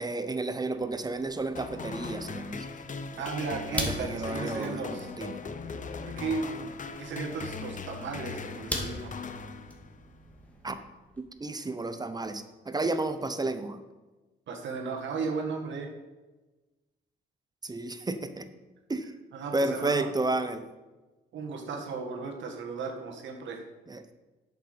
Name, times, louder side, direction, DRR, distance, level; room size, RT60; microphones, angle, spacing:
voice 1, 0.0-2.6 3.7-5.4 10.6-10.8 11.2-13.8 17.6-18.5 18.9-19.1 19.5-20.6 23.9-24.0, right 2 dB, 20° right, 10 dB, 0.9 m, -32 dB
sound 1, 0.8-11.2, equal, 5° left, 2.0 m, -42 dB
sound 2, 1.6-10.1, left 5 dB, 40° left, 0.9 m, -39 dB
voice 2, 3.2-5.1 6.0-9.1 14.5-15.9 19.3-20.1 21.3-23.6, right 4 dB, 70° right, 2 dB, 1.7 m, -35 dB
8.1 x 7.0 x 6.8 m, 1.2 s
cardioid pair, 90°, 20 cm